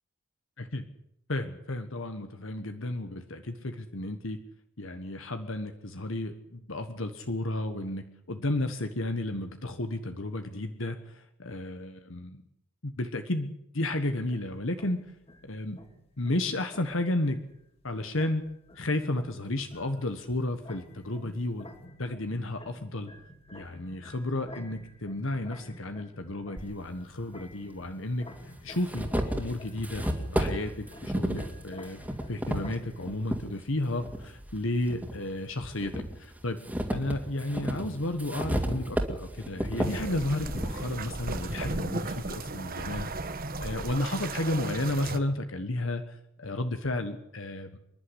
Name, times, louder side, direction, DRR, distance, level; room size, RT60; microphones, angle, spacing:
voice 1, 1.3-4.4 4.8-12.4 12.8-15.0 15.4-15.8 16.2-17.4 17.8-18.5 18.7-21.7 22.0-23.1 23.5-28.3 28.6-30.1 30.3-32.0 32.3-36.6 36.9-43.1 43.6-47.8, left 1 dB, 60° left, 7 dB, 1.4 m, -32 dB
sound 1, 13.9-33.1, left 1 dB, 25° left, 2.7 m, -51 dB
sound 2, 26.6-26.7 27.7-27.8 28.3-33.4 34.0-35.2 35.6-41.7, equal, 5° right, 2.6 m, -33 dB
sound 3, 39.8-45.2, right 2 dB, 40° right, 1.2 m, -35 dB
27.0 x 11.5 x 10.0 m, 0.78 s
head